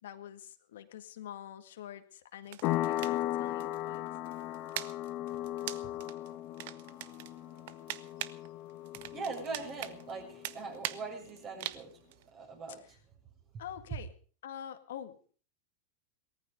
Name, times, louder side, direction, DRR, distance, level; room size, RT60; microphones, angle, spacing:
voice 1, 0.0-4.0 12.7-13.0 13.6-14.1 14.4-15.4, left 10 dB, 75° left, 8 dB, 1.9 m, -46 dB
sound 1, 2.4-12.3, right 15 dB, 65° right, 0.9 m, -44 dB
sound 2, 2.6-11.0, left 15 dB, 50° left, 1.5 m, -37 dB
voice 2, 9.1-11.9 12.3-12.8, right 4 dB, 35° right, 3 dB, 7.4 m, -41 dB
18.5 x 14.5 x 5.2 m, 0.41 s
hypercardioid pair, 100°, 0 cm